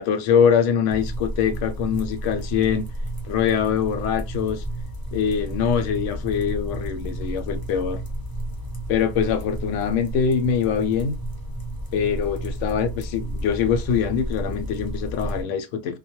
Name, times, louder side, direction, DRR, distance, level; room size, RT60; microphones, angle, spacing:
voice 1, 0.0-2.9 3.3-4.6 5.1-8.0 8.9-11.1 11.9-16.0, left 7 dB, 70° left, 0.9 m, -23 dB
sound 1, 0.9-15.4, right 1 dB, 30° left, 0.4 m, -32 dB
2.2 x 2.2 x 2.9 m
omnidirectional pair, 1.4 m